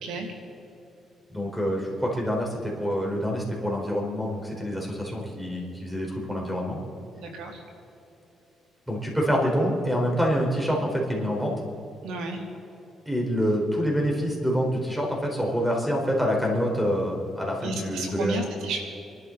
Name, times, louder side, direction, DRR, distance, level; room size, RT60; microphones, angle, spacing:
voice 1, 1.3-6.8 8.9-11.5 13.1-18.5, equal, 5° right, -1 dB, 4.2 m, -26 dB
voice 2, 7.2-7.6 12.0-12.4 17.6-18.8, right 3 dB, 90° right, 2 dB, 2.3 m, -32 dB
27.5 x 12.5 x 4.0 m, 2.8 s
cardioid pair, 90°, 0 cm